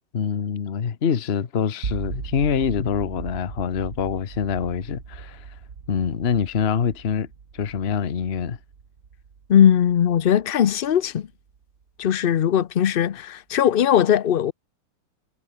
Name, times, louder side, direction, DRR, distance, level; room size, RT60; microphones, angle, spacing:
voice 1, 0.1-5.5 5.9-7.3 7.5-8.6, left 7 dB, 40° left, 1.3 m, -25 dB
sound 1, 1.8-11.8, right 6 dB, 50° right, 2.0 m, -38 dB
voice 2, 9.5-11.3 12.0-14.5, left 9 dB, 65° left, 0.5 m, -19 dB
omnidirectional pair, 1.9 m